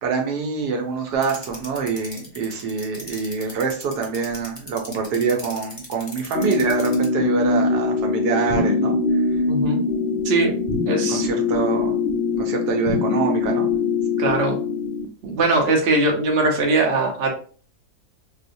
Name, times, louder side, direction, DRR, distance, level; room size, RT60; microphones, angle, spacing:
voice 1, 0.0-9.0 11.1-12.0 12.4-13.7, right 5 dB, 80° right, 2 dB, 1.3 m, -25 dB
sound 1, 1.2-7.0, left 2 dB, 25° left, 0.7 m, -37 dB
sound 2, 6.3-15.1, left 4 dB, 70° left, 0.6 m, -22 dB
voice 2, 9.5-9.8 10.2-10.6 10.9-11.2 14.2-14.6 15.2-17.3, right 2 dB, 50° right, 1 dB, 0.9 m, -20 dB
4.5 x 2.1 x 2.6 m, 0.41 s
omnidirectional pair, 1.7 m